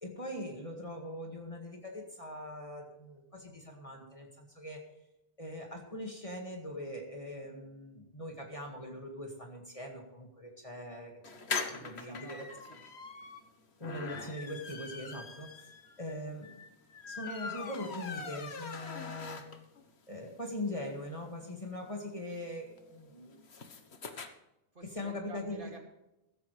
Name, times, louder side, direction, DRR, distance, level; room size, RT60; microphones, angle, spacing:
voice 1, 0.0-4.9 5.4-11.1 11.5-12.5 13.8-15.7 16.0-16.6 17.1-19.5 20.1-23.4 24.8-25.7, left 1 dB, 30° left, 1 dB, 2.0 m, -41 dB
sound 1, 11.2-19.8 20.2-20.3 20.5-20.6 20.9-24.3, left 4 dB, 80° left, 1.5 m, -42 dB
voice 2, 11.7-12.8 24.7-25.8, right 3 dB, 55° right, 1 dB, 2.7 m, -51 dB
15.0 x 14.5 x 3.3 m, 0.91 s
omnidirectional pair, 1.1 m